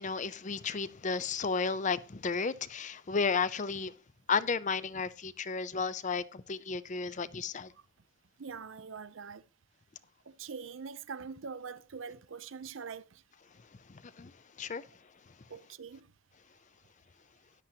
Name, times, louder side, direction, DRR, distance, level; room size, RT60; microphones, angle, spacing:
voice 1, 0.0-3.9 4.3-7.7 13.9-14.3 14.6-14.8, left 5 dB, 35° left, 0.5 m, -33 dB
voice 2, 8.4-9.4 10.3-13.2 15.5-16.1, right 5 dB, 65° right, 0.6 m, -43 dB
13.5 x 10.5 x 2.8 m
head